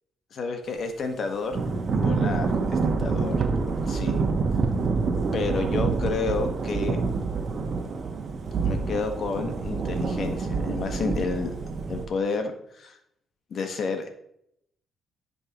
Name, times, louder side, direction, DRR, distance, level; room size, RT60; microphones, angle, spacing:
voice 1, 0.3-1.6 1.9-3.4 3.9-4.3 5.3-7.0 8.6-11.5 11.9-13.0 13.5-14.1, left 4 dB, 60° left, 6 dB, 1.3 m, -30 dB
Thunder / Rain, 1.5-12.1, right 4 dB, 50° right, 1.2 m, -27 dB
10.5 x 5.6 x 3.0 m, 0.73 s
cardioid pair, 90°, 0 cm